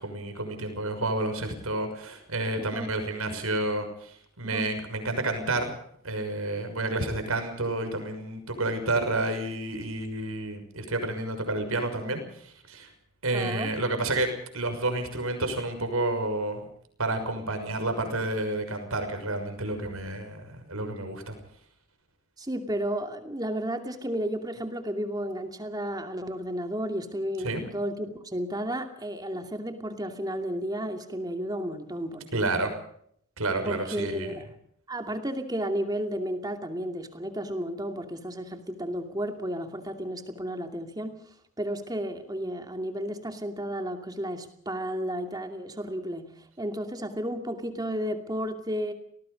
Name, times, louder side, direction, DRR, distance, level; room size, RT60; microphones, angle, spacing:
voice 1, 0.0-4.1 4.4-5.7 6.0-12.9 13.2-14.3 14.5-16.6 17.0-21.3 27.4-27.7 32.3-32.7 33.4-34.3, right 2 dB, 80° right, 7 dB, 6.3 m, -30 dB
voice 2, 2.6-2.9 4.4-4.7 13.3-13.7 22.4-32.7 33.6-34.5 34.9-41.2 41.6-48.9, equal, 15° right, 6 dB, 2.5 m, -33 dB
28.0 x 19.0 x 5.2 m, 0.66 s
head